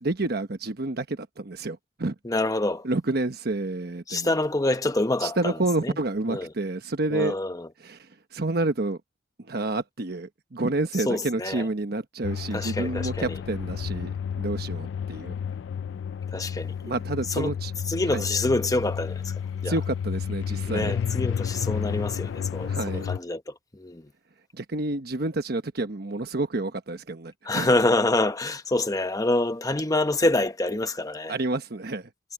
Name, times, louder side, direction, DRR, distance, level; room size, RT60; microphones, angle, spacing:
voice 1, 0.0-2.1 2.8-4.4 5.2-7.4 7.8-9.0 9.4-15.4 16.8-17.7 18.1-18.3 19.6-21.0 22.7-23.1 24.5-27.7 31.3-32.1, right 2 dB, 60° right, 1.1 m, -29 dB
voice 2, 2.3-2.8 4.1-5.4 6.3-6.4 7.1-7.5 11.1-11.6 12.5-13.0 16.3-16.7 17.4-17.5 17.9-19.2 19.6-19.7 20.7-23.4 23.8-24.0 27.5-31.3, left 2 dB, 20° left, 1.0 m, -26 dB
sound 1, 12.2-23.2, left 7 dB, 80° left, 0.3 m, -31 dB
head